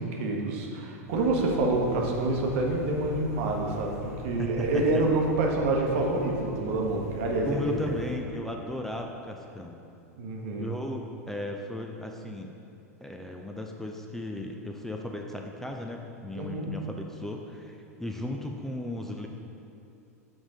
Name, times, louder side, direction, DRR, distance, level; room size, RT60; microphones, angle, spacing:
voice 1, 0.0-7.7 10.2-10.7 16.3-16.7, right 2 dB, 55° right, 0 dB, 0.9 m, -27 dB
sound 1, 1.1-8.2, left 2 dB, 70° left, 1.3 m, -42 dB
voice 2, 4.4-5.0 7.5-9.8 10.6-12.5 13.0-19.3, left 1 dB, 5° left, 2 dB, 0.4 m, -36 dB
6.1 x 3.7 x 4.9 m, 2.7 s
figure-of-eight pair, 90°, 8 cm